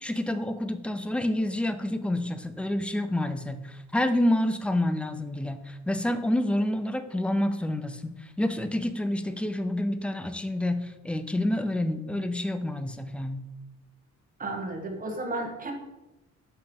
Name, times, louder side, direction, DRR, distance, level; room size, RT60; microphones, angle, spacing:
voice 1, 0.0-13.4, left 1 dB, 5° left, 10 dB, 0.4 m, -28 dB
voice 2, 14.4-15.7, right 2 dB, 30° right, 2 dB, 1.2 m, -33 dB
5.8 x 3.4 x 5.2 m, 1.0 s
cardioid pair, 90°, 30 cm